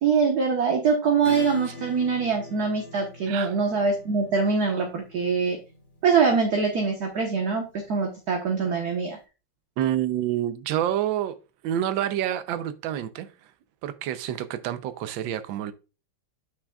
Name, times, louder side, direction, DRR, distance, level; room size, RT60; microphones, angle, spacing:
voice 1, 0.0-5.6 6.0-9.2, right 5 dB, 50° right, 1.5 m, -24 dB
Acoustic guitar / Strum, 1.2-8.4, left 1 dB, 30° left, 1.0 m, -42 dB
voice 2, 9.8-11.4 11.6-13.3 13.8-15.7, right 11 dB, 70° right, 1.4 m, -28 dB
9.7 x 6.2 x 2.3 m
omnidirectional pair, 2.4 m